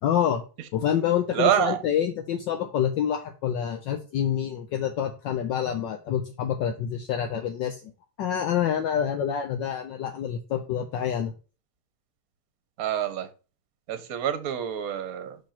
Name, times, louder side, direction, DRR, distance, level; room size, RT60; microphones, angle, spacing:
voice 1, 0.0-0.4 0.7-7.9 8.2-11.3, left 9 dB, 70° left, 6 dB, 1.3 m, -27 dB
voice 2, 1.3-1.8 12.8-13.3 13.9-15.4, right 10 dB, 50° right, 10 dB, 1.2 m, -26 dB
5.3 x 5.3 x 5.7 m, 0.35 s
omnidirectional pair, 2.3 m